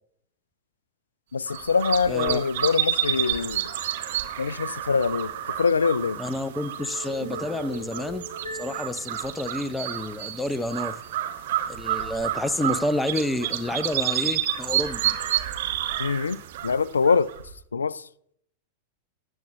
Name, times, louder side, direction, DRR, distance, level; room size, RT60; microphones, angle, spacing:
voice 1, 1.3-3.6 4.4-5.3 5.6-6.2 16.0-16.4 16.6-17.3 17.7-18.1, left 5 dB, 75° left, 0.3 m, -24 dB
sound 1, 1.5-17.5, right 11 dB, 55° right, 1.1 m, -30 dB
voice 2, 2.1-2.4 6.2-8.3 8.5-10.9 11.7-15.2, left 1 dB, 10° left, 0.7 m, -29 dB
sound 2, 6.8-10.1, equal, 90° right, 2.2 m, -40 dB
19.5 x 8.5 x 2.5 m
figure-of-eight pair, 90°, 0 cm